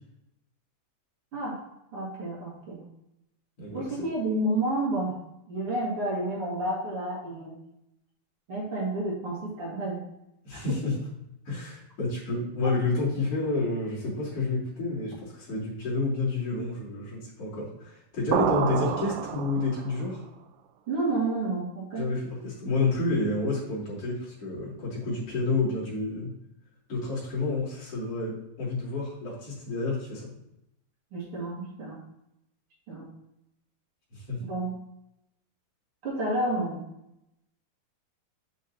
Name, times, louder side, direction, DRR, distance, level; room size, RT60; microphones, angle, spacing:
voice 1, 1.9-2.8 3.7-5.2 5.5-7.6 8.5-10.0 10.5-10.6 18.5-18.6 20.9-22.1 31.1-32.0 32.9-33.1 34.4-34.7 36.0-36.8, right 2 dB, 45° right, -5 dB, 2.5 m, -30 dB
voice 2, 3.6-4.0 10.4-11.0 11.5-20.2 22.0-26.3 26.9-30.3 34.1-34.4, left 3 dB, 40° left, -8 dB, 3.7 m, -29 dB
sound 1, 18.3-20.0, right 8 dB, 90° right, 1.8 m, -28 dB
7.6 x 6.3 x 2.8 m, 0.85 s
omnidirectional pair, 4.2 m